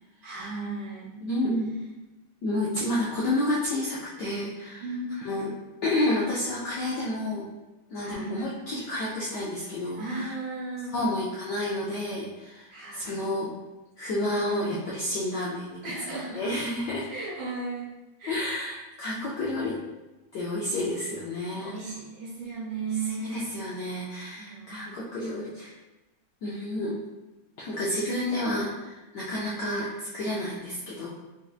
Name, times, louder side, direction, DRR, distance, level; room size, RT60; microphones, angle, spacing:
voice 1, 0.2-1.2 4.8-5.3 8.0-8.4 9.9-11.0 12.7-13.2 15.8-16.4 17.1-17.9 18.2-18.5 21.5-23.4 24.4-24.7 28.1-28.4 29.4-29.7, right 3 dB, 70° right, -7 dB, 1.9 m, -35 dB
voice 2, 1.2-1.8 2.4-4.8 5.2-5.6 5.8-7.5 7.9-10.3 10.9-13.5 14.0-15.8 16.1-17.1 18.3-19.8 20.3-22.0 23.2-25.7 26.4-27.0 27.6-31.1, left 1 dB, 75° left, -6 dB, 0.9 m, -30 dB
4.3 x 2.5 x 2.3 m, 1.1 s
omnidirectional pair, 2.4 m